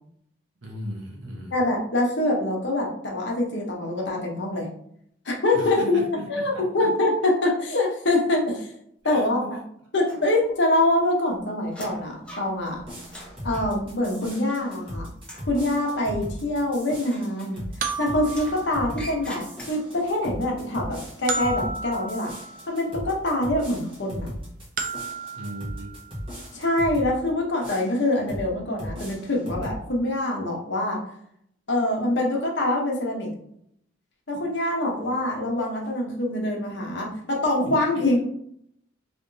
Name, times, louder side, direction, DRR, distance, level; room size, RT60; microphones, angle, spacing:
voice 1, 0.6-1.5 5.5-6.9 9.0-9.6 25.3-26.0 37.9-38.2, equal, 75° right, 0 dB, 1.0 m, -37 dB
voice 2, 1.5-4.7 5.2-8.7 9.0-9.6 9.9-12.8 13.4-15.1 15.5-17.6 18.0-22.3 22.7-24.3 26.5-31.0 31.7-33.3 34.3-38.2, left 1 dB, 60° left, -1 dB, 0.9 m, -25 dB
sound 1, 10.0-10.8 11.1-14.9 15.2-15.6 17.0-17.9 18.3-20.1, equal, 5° left, 0.6 m, -44 dB
sound 2, 12.8-27.1 27.6-28.5 28.8-29.8, equal, 25° right, 1.2 m, -38 dB
sound 3, 15.4-15.5 17.8-19.7 21.3-22.9 24.8-26.2, right 4 dB, 40° right, 0.4 m, -33 dB
3.3 x 2.9 x 2.7 m, 0.69 s
head